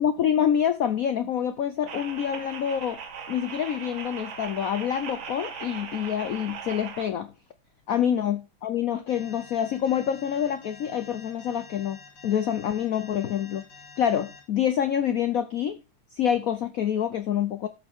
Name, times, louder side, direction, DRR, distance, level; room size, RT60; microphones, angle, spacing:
voice 1, 0.0-3.0 3.3-7.3 7.9-13.6 14.0-15.8 16.1-17.7, left 9 dB, 80° left, 0.7 m, -26 dB
sound 1, 1.9-7.1, right 6 dB, 65° right, 1.9 m, -39 dB
Alarm, 9.1-14.4, left 5 dB, 50° left, 4.0 m, -48 dB
13.0 x 5.8 x 3.6 m
omnidirectional pair, 2.3 m